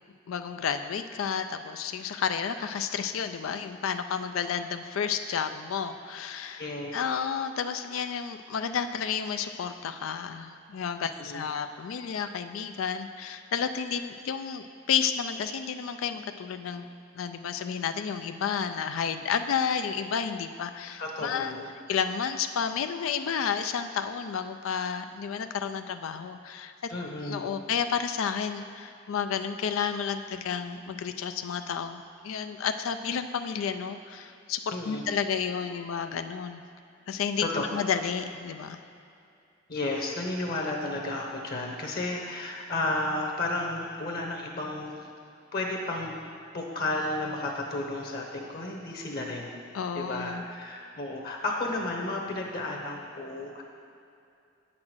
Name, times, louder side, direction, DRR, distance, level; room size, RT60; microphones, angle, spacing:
voice 1, 0.3-16.9 17.1-21.5 21.9-26.9 27.2-36.6 37.1-38.8 49.7-50.4, left 7 dB, 90° left, 9 dB, 0.4 m, -31 dB
voice 2, 6.6-6.9 11.0-11.5 21.0-21.7 26.9-27.5 34.7-35.0 37.4-37.6 39.7-45.1 45.5-46.2 46.5-49.5 49.9-53.6, left 2 dB, 50° left, 0 dB, 1.1 m, -33 dB
8.7 x 6.0 x 6.2 m, 2.5 s
head